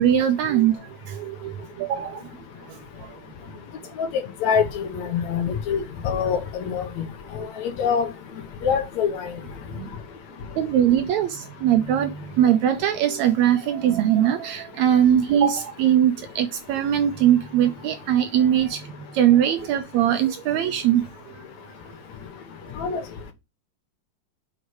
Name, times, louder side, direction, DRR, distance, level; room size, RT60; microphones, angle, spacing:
voice 1, 0.0-2.2 2.7-3.1 7.4-7.5 9.8-9.9 10.6-21.1, right 10 dB, 75° right, 1.8 m, -21 dB
voice 2, 4.4-7.1 7.6-8.1 8.6-9.3 22.8-23.0, left 7 dB, 65° left, 2.2 m, -24 dB
6.5 x 4.8 x 6.3 m
omnidirectional pair, 3.7 m